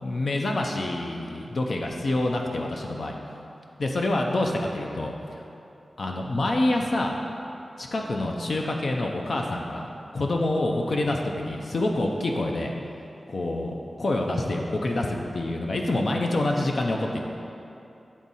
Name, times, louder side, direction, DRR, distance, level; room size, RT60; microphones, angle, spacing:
voice 1, 0.0-3.2 3.8-5.4 6.0-7.2 7.8-12.7 13.3-17.2, left 2 dB, 60° left, 1 dB, 0.5 m, -27 dB
10.0 x 3.6 x 4.1 m, 2.8 s
wide cardioid pair, 115°, 0 cm